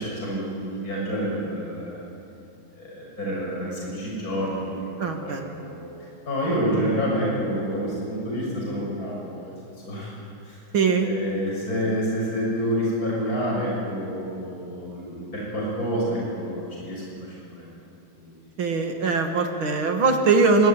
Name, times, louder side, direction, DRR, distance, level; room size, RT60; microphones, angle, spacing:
voice 1, 0.0-2.0 2.8-9.5 9.8-10.6 11.0-17.7 18.1-18.4, equal, 45° left, -4 dB, 7.2 m, -28 dB
voice 2, 5.0-5.5 10.7-11.1 18.6-20.7, right 4 dB, 75° right, 4 dB, 3.2 m, -21 dB
26.0 x 24.0 x 9.2 m, 2.7 s
omnidirectional pair, 2.3 m